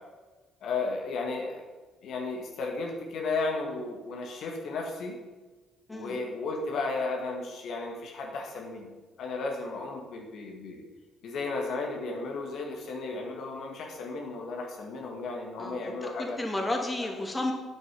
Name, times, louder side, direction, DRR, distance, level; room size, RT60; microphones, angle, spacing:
voice 1, 0.6-1.6 2.0-5.2 5.9-8.9 9.2-10.8 11.2-16.4, left 3 dB, 60° left, 1 dB, 1.8 m, -34 dB
voice 2, 5.9-6.2 15.6-17.5, left 2 dB, 20° left, 2 dB, 2.4 m, -32 dB
9.3 x 8.1 x 5.2 m, 1.3 s
hypercardioid pair, 50°, 0 cm